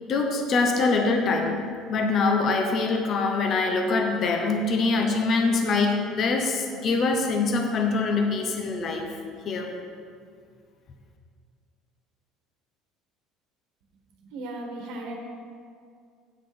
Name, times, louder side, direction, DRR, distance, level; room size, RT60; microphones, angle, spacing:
voice 1, 0.1-1.6 1.9-9.2 9.4-9.7, left 3 dB, 35° left, 3 dB, 0.8 m, -24 dB
voice 2, 14.3-15.2, right 2 dB, 75° right, 1 dB, 1.3 m, -35 dB
8.7 x 5.8 x 5.1 m, 2.2 s
cardioid pair, 155°, 0 cm